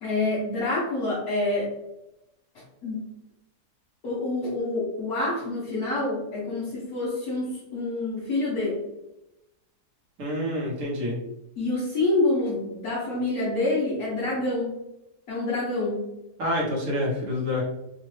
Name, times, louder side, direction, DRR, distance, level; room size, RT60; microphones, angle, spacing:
voice 1, 0.0-1.7 2.5-3.0 4.0-8.8 11.6-14.7 15.3-16.0, left 2 dB, 60° left, -8 dB, 1.5 m, -27 dB
voice 2, 10.2-11.2 16.4-17.6, left 1 dB, 60° right, -5 dB, 1.7 m, -27 dB
4.2 x 2.5 x 3.2 m, 0.89 s
omnidirectional pair, 1.8 m